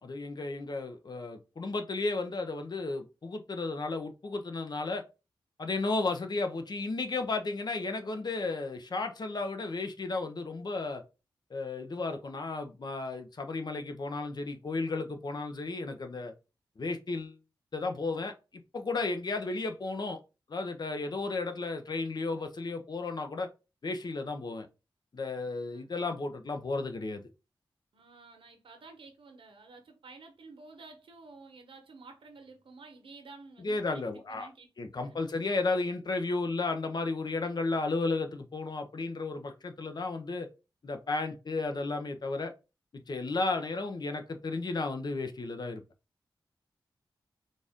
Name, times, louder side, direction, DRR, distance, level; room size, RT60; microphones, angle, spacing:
voice 1, 0.0-5.0 5.6-11.0 11.5-16.3 16.8-17.4 17.7-18.3 18.7-20.2 20.5-23.5 23.8-24.7 25.1-27.2 33.6-34.5 34.8-40.5 40.8-42.5 43.1-45.8, left 3 dB, 55° left, 0.7 m, -33 dB
voice 2, 27.9-34.7 34.9-35.2, right 3 dB, 80° right, 1.0 m, -52 dB
3.9 x 2.5 x 3.5 m
cardioid pair, 55°, 9 cm